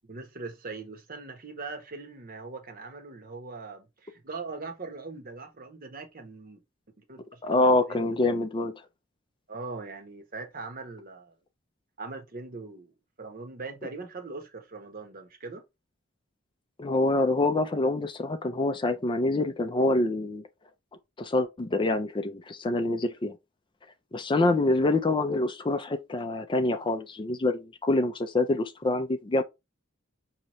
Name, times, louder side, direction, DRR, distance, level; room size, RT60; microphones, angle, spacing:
voice 1, 0.0-6.6 7.1-8.1 9.5-11.3 12.0-12.9 13.2-15.6, right 3 dB, 45° right, 1.0 m, -41 dB
voice 2, 7.4-8.7 16.8-20.4 21.2-23.3 24.1-29.4, left 2 dB, 25° left, 0.4 m, -26 dB
5.2 x 2.9 x 3.0 m
head